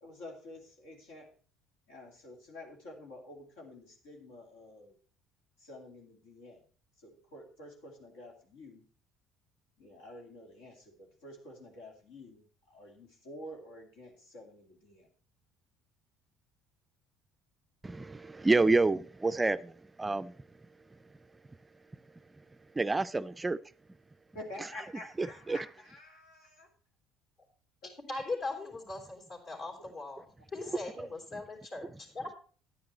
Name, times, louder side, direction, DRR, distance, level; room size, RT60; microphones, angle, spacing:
voice 1, 0.0-1.3 1.9-5.0 5.6-6.6 7.0-8.8 9.8-15.1 24.3-26.7 27.8-27.9 30.6-31.0, left 1 dB, 80° left, 1 dB, 2.5 m, -49 dB
voice 2, 17.8-20.3 22.8-23.6 25.2-25.6 31.0-31.1, right 3 dB, 20° right, 14 dB, 0.4 m, -28 dB
voice 3, 28.1-29.2 29.5-30.3 30.5-32.3, left 3 dB, 55° left, 1 dB, 3.6 m, -39 dB
9.9 x 9.6 x 4.2 m, 0.40 s
hypercardioid pair, 65°, 0 cm